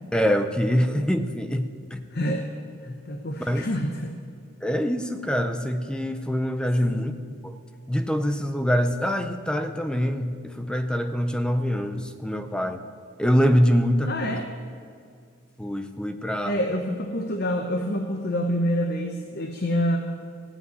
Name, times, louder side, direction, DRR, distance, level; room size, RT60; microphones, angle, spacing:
voice 1, 0.1-2.0 3.4-3.7 4.6-7.1 7.4-7.5 7.9-12.8 13.2-14.4 15.6-16.6, equal, 5° left, 8 dB, 0.6 m, -24 dB
voice 2, 2.1-2.5 2.8-4.1 6.8-7.0 14.0-14.5 16.5-20.0, equal, 50° left, 4 dB, 0.8 m, -27 dB
16.0 x 5.6 x 9.3 m, 2.2 s
head